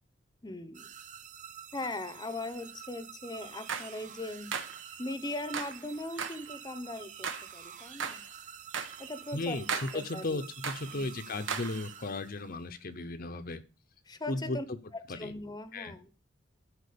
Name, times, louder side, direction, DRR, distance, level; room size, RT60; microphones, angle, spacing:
voice 1, 0.4-0.9 1.7-4.5 5.0-8.2 9.0-9.6 9.9-10.4 10.9-11.2 14.1-14.7 14.9-16.1, left 2 dB, 20° left, 11 dB, 0.9 m, -39 dB
sound 1, 0.7-12.6, right 9 dB, 40° right, 0.8 m, -49 dB
sound 2, 3.4-4.0 4.5-5.0 5.4-5.8 6.2-7.5 7.8-8.3 8.7-9.2 9.5-10.1 10.5-11.1 11.5-11.9, right 6 dB, 80° right, 1.4 m, -38 dB
voice 2, 9.3-13.6 14.3-14.8 15.1-15.3 15.7-15.9, left 2 dB, 50° left, 9 dB, 0.9 m, -35 dB
12.5 x 4.6 x 6.8 m, 0.33 s
head